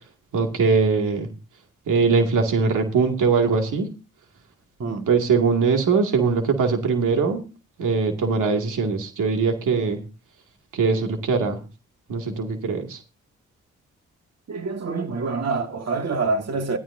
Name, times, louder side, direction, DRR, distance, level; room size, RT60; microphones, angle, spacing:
voice 1, 0.3-1.3 1.9-3.9 5.1-7.4 7.8-10.0 10.7-11.6 12.1-13.0, right 5 dB, 90° right, 2.3 m, -21 dB
voice 2, 4.8-5.1 14.5-16.8, right 4 dB, 55° right, 1.8 m, -26 dB
14.0 x 13.5 x 2.7 m
cardioid pair, 50°, 30 cm